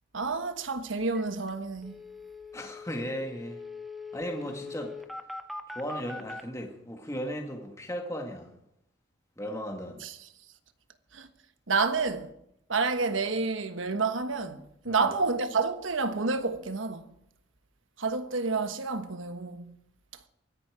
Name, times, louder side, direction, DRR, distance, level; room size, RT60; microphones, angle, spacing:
voice 1, 0.1-2.0 10.0-10.1 11.1-11.3 11.7-12.3 12.7-17.0 18.0-19.7, right 4 dB, 80° right, 1.3 m, -29 dB
sound 1, 1.1-1.2 1.5-1.6 1.8-6.4, left 3 dB, ahead, 0.9 m, -41 dB
voice 2, 2.5-3.6 4.1-5.0 5.8-8.5 9.4-10.1 14.8-15.1, equal, 15° left, 1.8 m, -36 dB
23.5 x 10.5 x 5.0 m
head